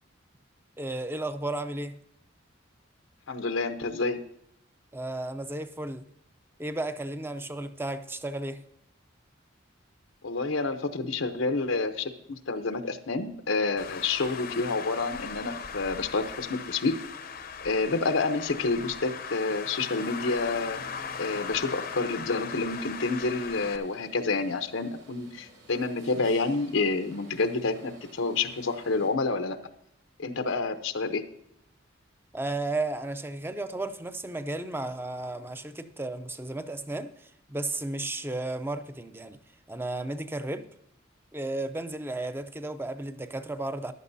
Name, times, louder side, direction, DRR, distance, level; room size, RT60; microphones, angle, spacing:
voice 1, 0.8-2.0 4.9-6.0 6.6-8.6 32.3-39.4 39.7-40.7 41.3-43.9, right 2 dB, 10° right, 0.6 m, -34 dB
voice 2, 3.3-4.2 10.2-16.9 17.6-20.8 21.2-29.6 30.2-31.2, left 3 dB, 85° left, 0.8 m, -29 dB
Traffic noise roadway noise, 13.8-23.8, left 6 dB, 50° left, 0.7 m, -38 dB
sound 1, 22.7-29.1, right 1 dB, 80° right, 5.0 m, -54 dB
14.5 x 11.5 x 2.7 m
head